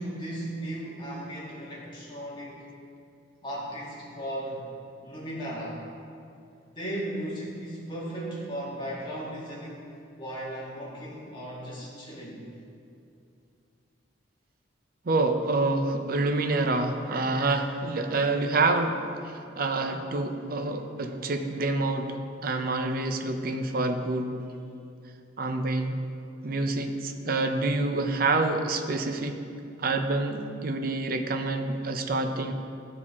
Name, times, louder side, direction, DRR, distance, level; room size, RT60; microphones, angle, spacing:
voice 1, 0.0-2.7 3.4-4.6 5.0-5.8 6.7-9.9 10.2-12.4, right 1 dB, 25° left, -6 dB, 1.8 m, -36 dB
voice 2, 15.0-24.4 25.4-26.0 26.4-29.4 29.8-32.5, right 2 dB, 50° right, 6 dB, 0.6 m, -27 dB
13.0 x 4.8 x 3.6 m, 2.6 s
head